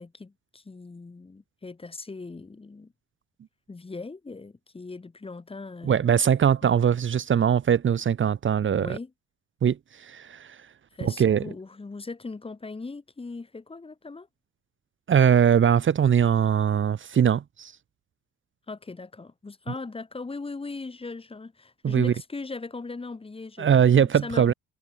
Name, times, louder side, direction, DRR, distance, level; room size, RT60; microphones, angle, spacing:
voice 1, 0.0-2.9 3.7-6.1 6.6-6.7 8.7-9.1 10.9-14.3 18.7-24.5, left 3 dB, 20° left, 3.5 m, -39 dB
voice 2, 5.8-9.0 9.6-10.6 11.0-11.4 15.1-17.7 21.8-22.1 23.6-24.5, right 8 dB, 40° right, 1.6 m, -21 dB
cardioid pair, 125°, 30 cm